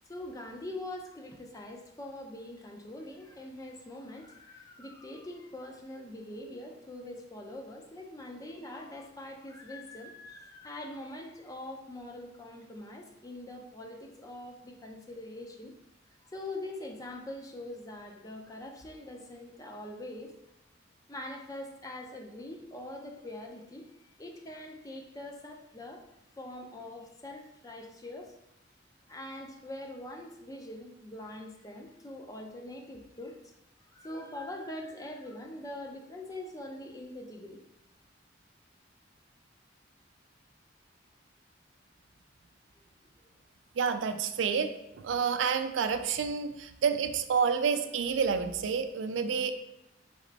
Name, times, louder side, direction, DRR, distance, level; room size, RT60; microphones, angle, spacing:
voice 1, 0.0-15.7 16.3-20.3 21.1-26.0 26.3-28.3 29.1-33.4 33.9-37.6, left 1 dB, 20° left, 1 dB, 0.5 m, -43 dB
voice 2, 43.8-44.7 45.0-49.5, right 6 dB, 85° right, 9 dB, 0.4 m, -29 dB
4.2 x 3.1 x 3.9 m, 0.88 s
head